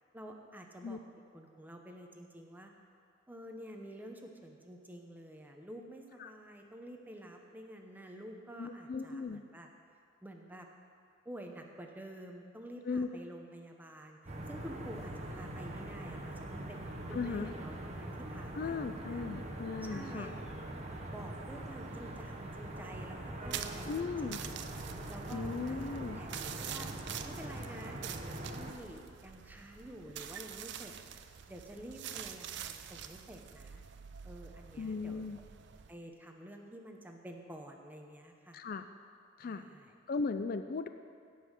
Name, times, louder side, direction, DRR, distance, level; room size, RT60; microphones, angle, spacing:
voice 1, 0.1-1.0 1.3-2.7 3.3-9.7 10.2-10.7 11.2-14.2 14.5-19.2 19.8-20.3 21.1-24.3 25.1-26.9 27.2-31.1 31.5-33.8 34.2-35.3 35.9-38.6 39.4-39.9, right 1 dB, 10° right, 2 dB, 0.9 m, -49 dB
voice 2, 8.6-9.4 12.9-13.1 17.1-17.5 18.5-20.3 23.9-24.4 25.3-26.2 34.8-35.4 38.5-38.9 39.4-39.6 40.1-40.9, left 4 dB, 45° left, 9 dB, 0.4 m, -37 dB
sound 1, 14.3-28.7, right 1 dB, 35° right, 1.0 m, -43 dB
sound 2, 23.5-35.9, right 9 dB, 60° right, 0.5 m, -46 dB
16.5 x 5.5 x 6.4 m, 2.3 s
head